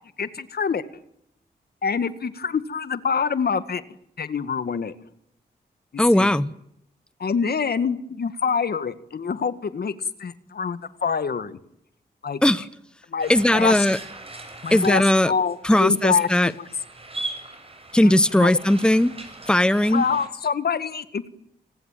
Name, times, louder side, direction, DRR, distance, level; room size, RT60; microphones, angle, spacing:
voice 1, 0.2-0.8 1.8-3.8 4.2-4.9 6.1-6.3 7.2-9.9 10.2-11.6 12.2-12.7 13.1-13.9 14.6-16.3 16.6-16.7 18.0-18.5 19.9-21.3, left 6 dB, 65° left, 13 dB, 1.9 m, -26 dB
voice 2, 6.0-6.5 12.4-12.6 13.3-14.0 14.7-15.3 15.6-16.5 17.9-19.1 19.5-20.0, left 1 dB, 5° left, 16 dB, 1.0 m, -18 dB
sound 1, 13.2-20.3, right 2 dB, 35° right, 7.6 m, -39 dB
29.5 x 20.0 x 9.2 m, 0.75 s
cardioid pair, 60°, 17 cm